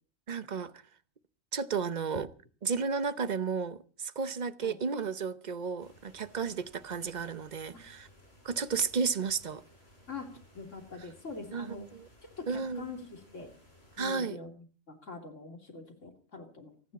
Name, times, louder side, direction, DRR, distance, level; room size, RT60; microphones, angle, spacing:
voice 1, 0.3-0.7 1.5-2.3 2.6-8.1 8.4-9.6 11.5-11.8 12.5-12.8 14.0-14.4, right 5 dB, 40° right, 0.8 m, -33 dB
sound 1, 5.8-14.1, left 1 dB, 50° left, 6.1 m, -59 dB
voice 2, 10.5-11.9 12.2-13.5 14.0-16.9, left 4 dB, 70° left, 3.3 m, -44 dB
29.0 x 10.0 x 4.1 m
omnidirectional pair, 1.4 m